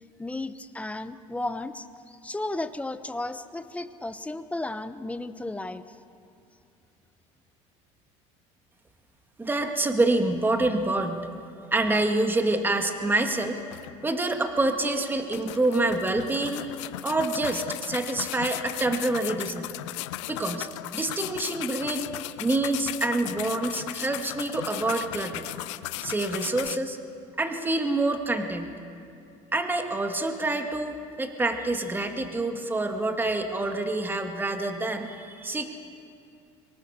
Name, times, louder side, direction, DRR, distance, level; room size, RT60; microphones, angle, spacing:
voice 1, 0.2-6.0, left 2 dB, 10° left, 11 dB, 1.0 m, -34 dB
voice 2, 9.4-11.3 11.7-13.6 14.0-16.7 17.0-19.7 20.3-22.1 22.4-25.5 26.0-27.0 27.4-28.7 29.5-35.7, right 2 dB, 15° right, 5 dB, 1.9 m, -27 dB
sound 1, 13.0-13.1 13.4-14.3 14.8-14.9 15.3-26.8, left 17 dB, 90° left, 0.6 m, -36 dB
24.0 x 19.0 x 6.8 m, 2.5 s
supercardioid pair, 100°, 15 cm